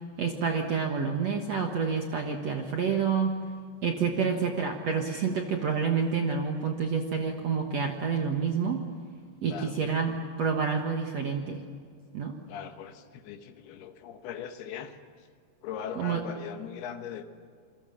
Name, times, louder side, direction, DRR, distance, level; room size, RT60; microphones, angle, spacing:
voice 1, 0.2-3.3 3.8-8.8 9.4-11.6 12.1-12.4 16.0-16.2, right 6 dB, 60° right, 3 dB, 1.8 m, -28 dB
voice 2, 4.0-4.4 9.4-9.8 12.5-15.3 15.6-17.2, left 8 dB, 75° left, 8 dB, 3.1 m, -40 dB
28.0 x 23.0 x 7.2 m, 2.1 s
omnidirectional pair, 4.9 m